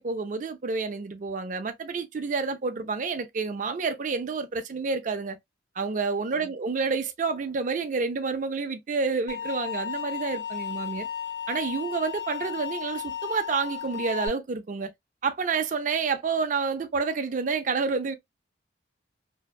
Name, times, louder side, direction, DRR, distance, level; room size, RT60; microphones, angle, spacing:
voice 1, 0.0-5.4 5.8-11.1 11.5-14.9 15.2-18.1, right 4 dB, 40° right, 0.4 m, -29 dB
sound 1, 9.3-14.3, left 8 dB, 65° left, 0.6 m, -34 dB
2.6 x 2.2 x 2.2 m
head